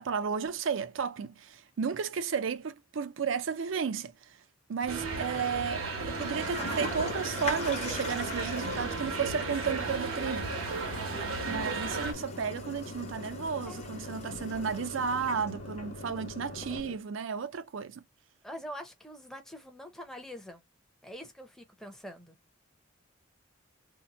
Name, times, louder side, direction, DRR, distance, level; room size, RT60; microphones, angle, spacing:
voice 1, 0.0-4.1 4.7-10.5 11.5-18.0, right 6 dB, 70° right, 0.4 m, -33 dB
Toilet flush, 4.8-16.8, left 2 dB, 30° left, 0.8 m, -42 dB
sound 1, 4.9-12.1, right 4 dB, 85° right, 0.9 m, -35 dB
sound 2, 6.0-17.0, left 3 dB, 75° left, 0.5 m, -44 dB
voice 2, 18.4-20.6 21.0-22.4, equal, ahead, 0.6 m, -44 dB
2.8 x 2.1 x 4.0 m
head